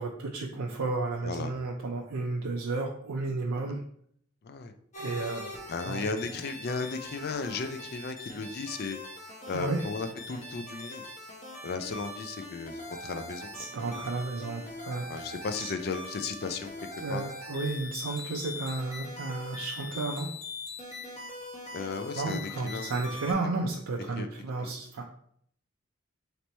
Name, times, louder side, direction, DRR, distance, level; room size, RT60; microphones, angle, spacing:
voice 1, 0.0-3.8 5.0-5.5 5.9-6.0 9.5-9.8 13.5-15.7 17.0-20.3 22.1-25.1, right 3 dB, 90° right, 1 dB, 0.4 m, -33 dB
sound 1, 4.9-23.3, left 2 dB, 35° left, 0.9 m, -42 dB
voice 2, 5.7-9.0 9.5-11.0 11.6-13.5 15.1-16.7 17.1-17.2 21.7-22.9 23.3-23.4 24.2-24.3 24.6-24.7, left 4 dB, 50° left, 8 dB, 0.3 m, -35 dB
3.3 x 3.0 x 4.1 m, 0.67 s
head